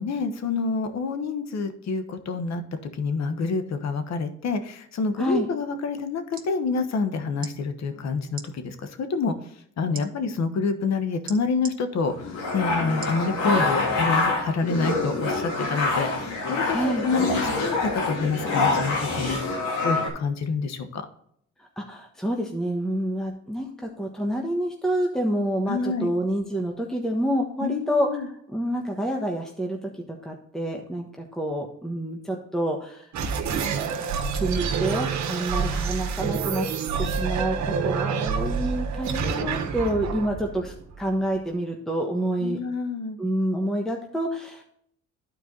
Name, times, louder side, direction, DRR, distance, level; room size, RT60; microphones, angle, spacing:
voice 1, 0.0-2.6 3.0-9.3 9.8-21.0 25.7-26.1 27.6-28.3 42.4-43.2, left 4 dB, 60° left, 9 dB, 1.3 m, -27 dB
sound 1, 6.1-6.5 7.4-7.6 8.3-8.5 9.9-10.1 11.3-11.8 13.0-13.2 13.8-13.9, right 6 dB, 30° right, 1.5 m, -39 dB
sound 2, 12.1-20.1, left 3 dB, 85° left, 2.9 m, -26 dB
voice 2, 16.7-17.1 21.6-33.1 34.3-36.7 37.0-42.6 43.2-44.6, right 1 dB, ahead, 1 dB, 1.2 m, -28 dB
sound 3, 33.1-41.4, right 6 dB, 70° right, 1.4 m, -27 dB
12.0 x 4.6 x 3.9 m, 0.68 s
cardioid pair, 90°, 30 cm